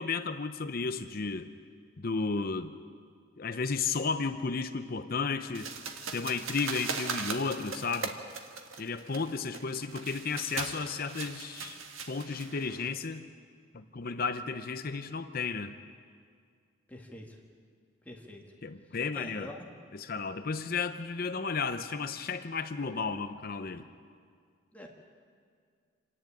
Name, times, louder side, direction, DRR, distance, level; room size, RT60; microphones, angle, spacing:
voice 1, 0.0-1.5 2.0-2.7 3.4-5.7 6.1-8.1 8.8-11.8 12.1-13.2 13.7-15.7 18.6-19.5 19.9-23.8, left 4 dB, 45° left, 9 dB, 0.6 m, -33 dB
sound 1, 5.5-12.9, right 5 dB, 80° right, 1.5 m, -39 dB
voice 2, 16.9-17.4 18.1-18.4 19.1-19.7 24.7-24.9, left 1 dB, 5° left, 0 dB, 1.9 m, -45 dB
27.0 x 11.0 x 8.8 m, 2.1 s
head